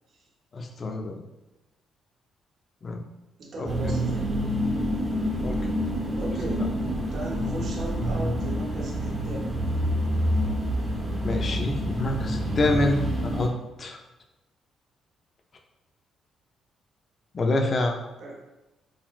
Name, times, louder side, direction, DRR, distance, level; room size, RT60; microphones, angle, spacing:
voice 1, 0.5-1.2 2.8-3.0 3.6-3.7 5.4-5.6 11.2-13.5 13.8-14.0 17.3-18.0, left 2 dB, 40° left, 3 dB, 0.4 m, -26 dB
voice 2, 3.4-4.4 6.2-6.7 7.1-9.6 18.2-18.4, right 2 dB, 60° right, -2 dB, 0.7 m, -37 dB
sound 1, 3.7-13.5, equal, 25° right, 0.6 m, -27 dB
3.9 x 2.1 x 2.3 m, 0.99 s
cardioid pair, 90°, 0 cm